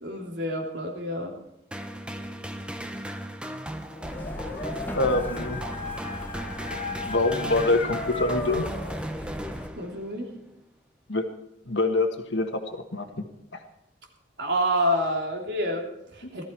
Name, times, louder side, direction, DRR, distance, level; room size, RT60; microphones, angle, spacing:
voice 1, 0.0-1.3 9.7-10.3 14.4-16.4, equal, 70° right, 1 dB, 3.1 m, -28 dB
sound 1, 1.7-10.2, equal, 5° right, 0.8 m, -37 dB
Dog, 3.9-9.0, left 2 dB, 40° left, 1.9 m, -35 dB
Truck, 4.0-9.7, equal, 10° left, 1.1 m, -39 dB
voice 2, 4.9-5.6 7.1-8.7 11.1-11.3 11.7-13.0, left 2 dB, 80° left, 5 dB, 1.5 m, -25 dB
18.5 x 13.0 x 4.6 m, 0.86 s
head